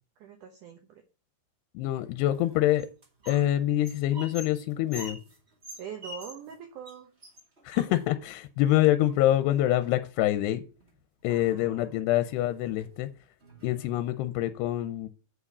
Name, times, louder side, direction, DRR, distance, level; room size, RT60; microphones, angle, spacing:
voice 1, 0.2-1.0 5.8-7.2 11.3-12.0, right 7 dB, 75° right, 5 dB, 1.8 m, -43 dB
voice 2, 1.8-2.9 3.3-5.2 7.7-10.6 11.2-13.1 13.6-15.1, left 13 dB, 80° left, 10 dB, 2.7 m, -26 dB
sound 1, 2.3-3.5 3.8-6.6 6.8-7.0 7.2-8.3 9.0-9.7 10.8-10.9 11.2-11.7 12.2-12.4 12.8-12.9 13.4-14.2, left 1 dB, 35° right, 1.0 m, -46 dB
8.4 x 5.0 x 6.6 m, 0.36 s
omnidirectional pair, 4.8 m